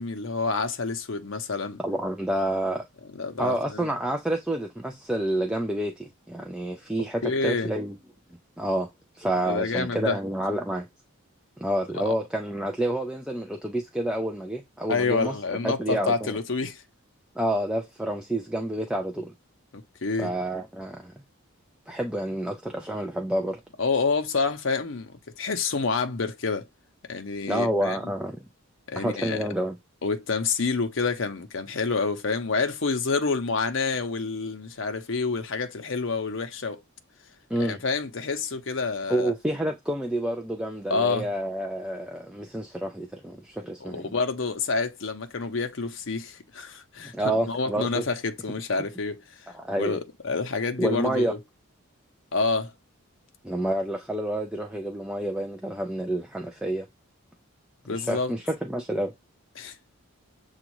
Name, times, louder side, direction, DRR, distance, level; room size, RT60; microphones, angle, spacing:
voice 1, 0.0-1.8 3.2-3.9 7.2-7.7 9.5-10.2 12.0-12.1 14.9-16.8 19.7-20.3 23.8-26.7 27.1-28.0 28.9-29.5 30.0-36.8 37.6-39.3 40.9-41.3 43.8-49.2 49.8-51.4 52.3-52.7 57.9-58.3 59.6-59.8, left 4 dB, 60° left, 0.7 m, -28 dB
voice 2, 1.8-2.8 3.4-8.0 8.6-8.9 9.1-10.9 11.6-15.4 15.6-16.3 17.4-19.3 20.2-21.1 21.9-23.6 27.5-28.5 29.0-29.7 37.5-37.8 39.1-44.1 47.1-48.0 49.5-50.0 50.8-51.3 53.4-56.9 57.9-59.1, right 1 dB, 5° right, 0.4 m, -28 dB
7.0 x 2.4 x 3.0 m
head